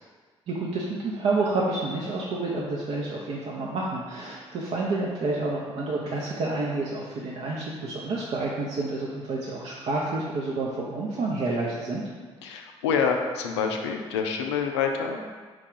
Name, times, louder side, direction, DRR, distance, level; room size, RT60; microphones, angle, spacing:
voice 1, 0.5-12.0, right 2 dB, 45° right, -4 dB, 0.6 m, -29 dB
voice 2, 12.4-15.4, left 6 dB, 70° left, 3 dB, 0.4 m, -27 dB
4.6 x 2.3 x 3.7 m, 1.5 s
figure-of-eight pair, 45°, 15 cm